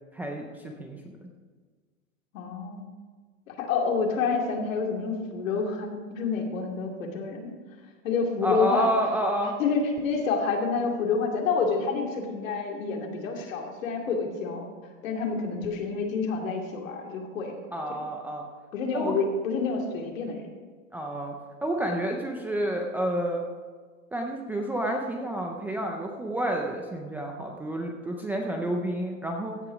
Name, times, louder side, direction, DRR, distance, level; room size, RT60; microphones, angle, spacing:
voice 1, 0.1-1.2 8.4-9.6 17.7-18.4 18.9-19.1 20.9-21.4 21.6-23.4 24.1-29.6, right 1 dB, 5° right, 1 dB, 0.3 m, -29 dB
voice 2, 2.3-2.9 3.5-7.5 8.0-8.9 9.6-14.7 15.0-17.6 17.9-18.0 18.7-20.5, left 4 dB, 80° left, 1 dB, 2.5 m, -28 dB
15.5 x 6.7 x 4.9 m, 1.5 s
supercardioid pair, 140°, 39 cm